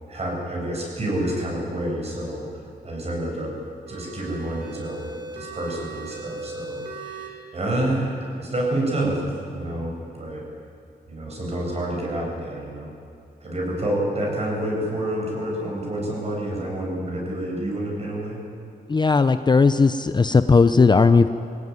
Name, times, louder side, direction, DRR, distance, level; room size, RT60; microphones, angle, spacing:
voice 1, 0.1-3.6 3.9-10.5 11.1-12.9 13.4-18.4, right 1 dB, 40° right, -2 dB, 7.8 m, -28 dB
sound 1, 3.9-7.3, right 3 dB, 75° right, 4.2 m, -38 dB
voice 2, 18.9-21.3, left 4 dB, 25° left, 11 dB, 0.6 m, -17 dB
23.5 x 17.5 x 9.7 m, 2.5 s
wide cardioid pair, 140°, 17 cm